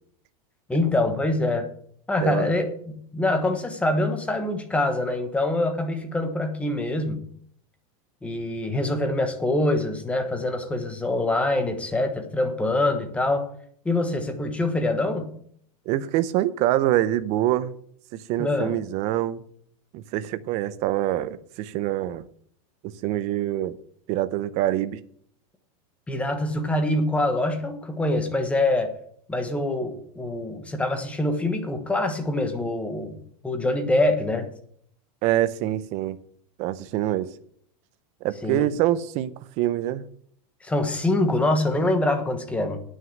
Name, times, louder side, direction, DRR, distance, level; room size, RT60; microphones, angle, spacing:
voice 1, 0.7-1.7 2.1-7.2 8.2-13.5 13.8-15.3 18.4-18.8 26.1-28.9 29.3-33.2 33.4-34.5 38.4-38.7 40.6-42.8, left 2 dB, 5° left, 6 dB, 1.1 m, -25 dB
voice 2, 2.2-2.5 15.9-17.7 18.1-19.4 19.9-22.2 22.8-23.8 24.1-25.0 35.2-36.2 36.6-37.3 38.2-40.1, right 13 dB, 35° right, 14 dB, 0.6 m, -25 dB
9.3 x 6.3 x 7.8 m, 0.63 s
supercardioid pair, 160°, 19 cm